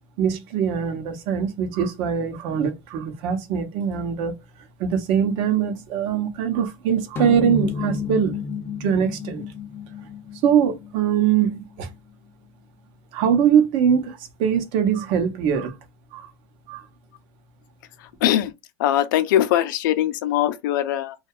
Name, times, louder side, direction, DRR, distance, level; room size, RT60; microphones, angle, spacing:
voice 1, 0.2-4.3 4.8-8.4 8.8-9.4 10.4-11.9 13.1-15.8 16.1-16.3 16.7-16.9, right 8 dB, 55° right, 0.7 m, -22 dB
sound 1, 7.2-11.8, left 5 dB, 20° left, 0.3 m, -31 dB
voice 2, 18.0-18.5 18.8-21.2, left 12 dB, 85° left, 0.4 m, -21 dB
2.7 x 2.3 x 2.2 m
supercardioid pair, 140°, 10 cm